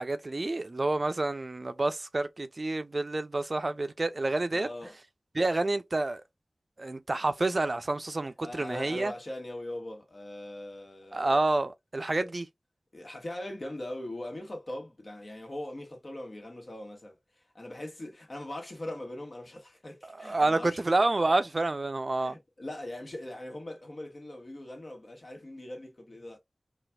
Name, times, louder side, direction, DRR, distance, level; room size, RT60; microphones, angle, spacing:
voice 1, 0.0-4.7 5.3-6.2 6.8-9.1 11.1-12.5 20.1-22.4, right 2 dB, 50° right, 0.4 m, -28 dB
voice 2, 4.5-4.9 8.4-11.4 12.2-12.3 12.9-20.8 22.2-26.4, left 1 dB, 55° left, 1.3 m, -41 dB
4.0 x 2.3 x 2.2 m
wide cardioid pair, 60°, 0 cm